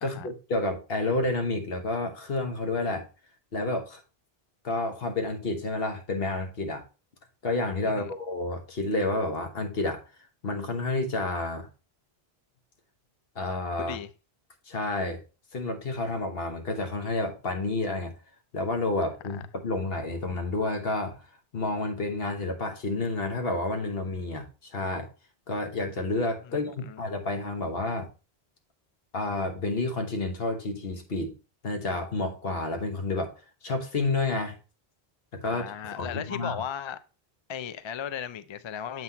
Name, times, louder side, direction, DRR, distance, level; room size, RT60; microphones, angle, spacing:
voice 1, 0.0-3.1 3.5-4.0 4.6-6.8 7.4-10.0 10.4-11.7 13.3-14.0 14.7-15.2 15.5-18.1 18.5-21.2 21.5-25.1 25.5-28.1 29.1-31.3 31.6-33.4 33.6-34.6 35.3-36.6, left 2 dB, 70° left, 1.4 m, -30 dB
voice 2, 13.8-14.1 26.5-27.0 35.4-37.0 37.5-39.0, left 8 dB, 50° left, 0.3 m, -36 dB
7.4 x 5.8 x 2.8 m
omnidirectional pair, 1.0 m